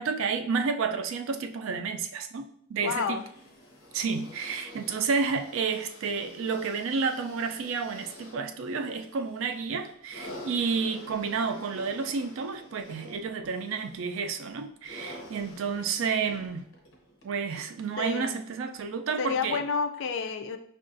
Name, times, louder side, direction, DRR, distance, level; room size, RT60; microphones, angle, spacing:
voice 1, 0.0-2.4 2.7-3.2 3.9-16.6 17.2-19.6, right 5 dB, 70° right, 7 dB, 0.4 m, -30 dB
voice 2, 2.8-3.2 18.0-18.4 19.2-20.6, left 5 dB, 65° left, 8 dB, 0.3 m, -30 dB
sound 1, 3.1-18.5 19.4-19.5, left 1 dB, 85° left, 0.8 m, -49 dB
5.3 x 2.4 x 2.5 m, 0.64 s
head